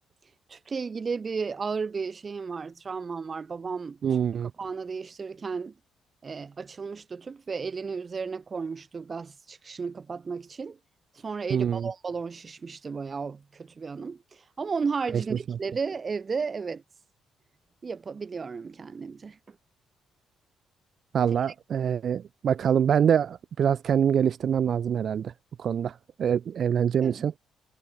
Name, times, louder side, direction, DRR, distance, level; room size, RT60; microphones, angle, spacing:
voice 1, 0.5-4.0 4.6-5.7 6.2-10.8 11.1-16.8 17.8-19.6 27.0-27.3, right 5 dB, 35° right, 4.4 m, -34 dB
voice 2, 4.0-4.5 11.5-11.9 15.5-15.6 21.1-25.3 25.6-27.4, right 8 dB, 55° right, 1.0 m, -25 dB
cardioid pair, 90°, 0 cm